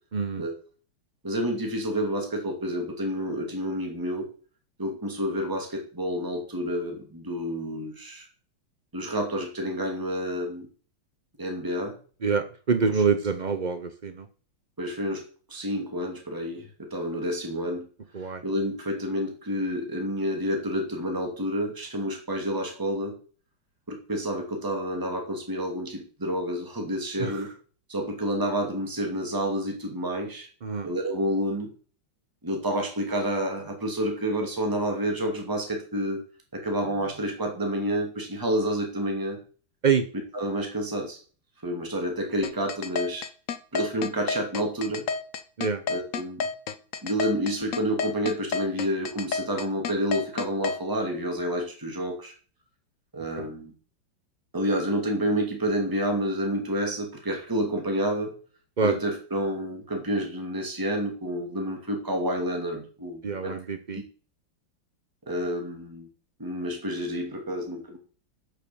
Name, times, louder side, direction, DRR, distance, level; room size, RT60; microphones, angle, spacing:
voice 1, 0.1-0.4 12.2-14.3 18.1-18.4 27.2-27.4 30.6-30.9 39.8-40.1 45.6-45.8 53.4-53.5 58.8-59.0 63.2-64.0, right 5 dB, 85° right, 9 dB, 0.4 m, -26 dB
voice 2, 1.2-4.3 4.8-8.3 8.9-10.7 11.4-12.0 12.8-12.9 14.8-17.9 18.2-23.1 23.9-27.5 27.9-30.5 30.8-31.7 32.4-36.2 36.5-39.4 40.3-41.2 41.6-43.3 43.7-45.1 45.9-46.5 47.0-52.3 53.1-53.7 54.5-58.3 58.8-63.6 63.9-64.0 65.3-66.1 66.4-68.0, equal, 10° right, 2 dB, 2.4 m, -29 dB
sound 1, 42.4-50.8, left 6 dB, 55° left, 0.9 m, -30 dB
8.7 x 6.7 x 7.0 m, 0.39 s
omnidirectional pair, 2.2 m